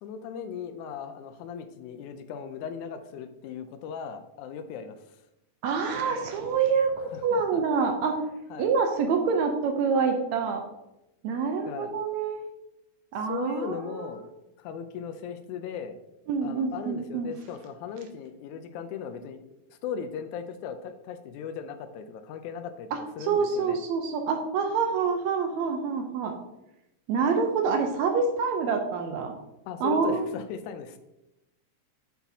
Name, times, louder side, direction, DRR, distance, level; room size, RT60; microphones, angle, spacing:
voice 1, 0.0-5.2 7.1-7.6 8.5-8.7 11.7-11.9 13.3-14.2 14.6-16.0 16.4-19.4 19.7-23.8 29.7-31.0, left 7 dB, 80° left, 9 dB, 1.9 m, -37 dB
voice 2, 5.6-8.2 8.6-10.6 11.2-12.5 13.1-14.0 16.3-17.3 22.9-26.3 27.1-29.3 29.8-30.3, right 5 dB, 75° right, 4 dB, 1.7 m, -26 dB
6.9 x 6.0 x 2.7 m, 0.91 s
omnidirectional pair, 3.5 m